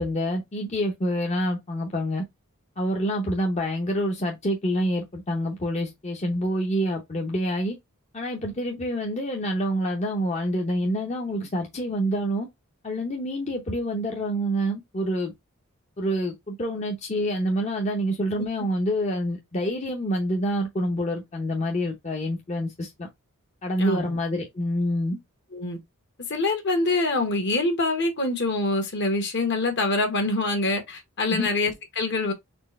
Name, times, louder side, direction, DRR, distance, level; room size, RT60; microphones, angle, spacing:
voice 1, 0.0-2.2 2.8-7.8 8.1-12.5 12.8-15.3 16.0-23.1 23.6-25.2 31.3-31.5, equal, 35° left, 0.8 m, -27 dB
voice 2, 23.8-24.2 25.5-25.8 26.3-32.3, left 2 dB, 55° left, 1.5 m, -25 dB
4.4 x 3.2 x 3.1 m
head